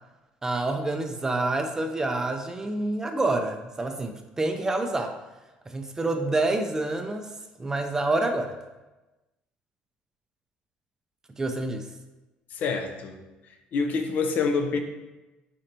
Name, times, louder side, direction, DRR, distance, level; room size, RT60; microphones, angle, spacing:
voice 1, 0.4-5.2 5.7-7.3 7.6-8.6 11.4-11.9, right 2 dB, 15° right, 5 dB, 0.3 m, -27 dB
voice 2, 12.5-13.2 13.7-14.8, left 4 dB, 60° left, 6 dB, 0.4 m, -26 dB
4.2 x 2.9 x 2.6 m, 1.1 s
cardioid pair, 100°, 3 cm